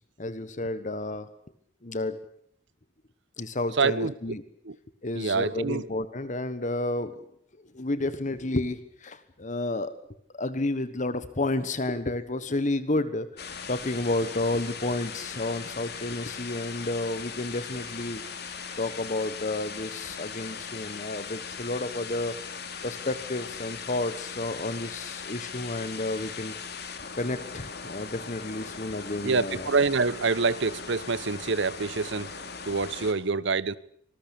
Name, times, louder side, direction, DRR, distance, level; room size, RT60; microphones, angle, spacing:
voice 1, 0.2-1.3 1.8-2.2 3.4-4.4 5.0-7.2 7.6-9.9 10.3-18.2 18.8-22.4 22.8-26.5 27.2-29.7, left 2 dB, 40° left, 1.3 m, -31 dB
voice 2, 3.8-4.1 4.6-4.8 5.1-5.9 29.2-33.8, right 4 dB, 65° right, 0.9 m, -26 dB
sound 1, 13.4-33.1, left 6 dB, 55° left, 3.2 m, -39 dB
26.0 x 20.0 x 8.6 m
head